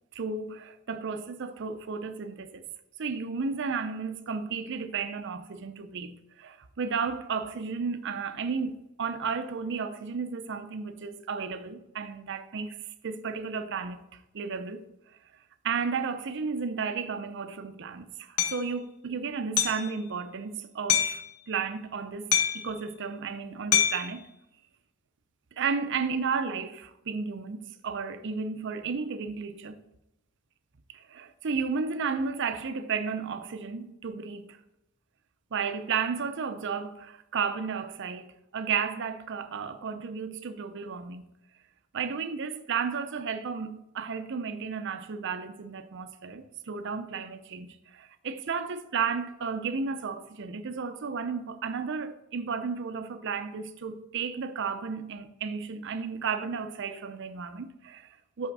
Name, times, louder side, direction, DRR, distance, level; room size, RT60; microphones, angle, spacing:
voice 1, 0.1-2.6 3.0-14.8 15.6-24.2 25.6-29.8 30.9-34.6 35.5-41.3 41.9-58.5, right 5 dB, 55° right, 0.5 m, -33 dB
Hammer, 18.4-18.6 19.6-19.9 20.9-21.2 22.3-22.7 23.7-24.1, left 9 dB, 85° left, 0.8 m, -25 dB
5.8 x 5.6 x 4.0 m
head